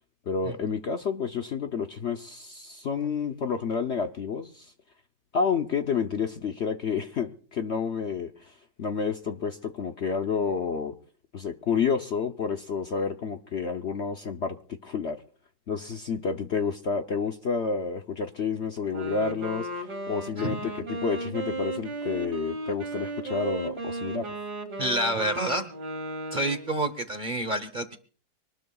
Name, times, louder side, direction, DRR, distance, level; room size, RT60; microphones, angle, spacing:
voice 1, 0.3-4.7 5.3-10.9 11.3-14.6 14.8-15.2 15.7-24.3, left 5 dB, 50° left, 6 dB, 0.9 m, -30 dB
Wind instrument woodwind instrument, 18.8-26.7, right 2 dB, 70° right, 2.6 m, -35 dB
voice 2, 24.8-25.7 26.3-28.0, right 1 dB, 35° right, 9 dB, 0.9 m, -28 dB
24.0 x 19.0 x 2.3 m, 0.43 s
omnidirectional pair, 1.8 m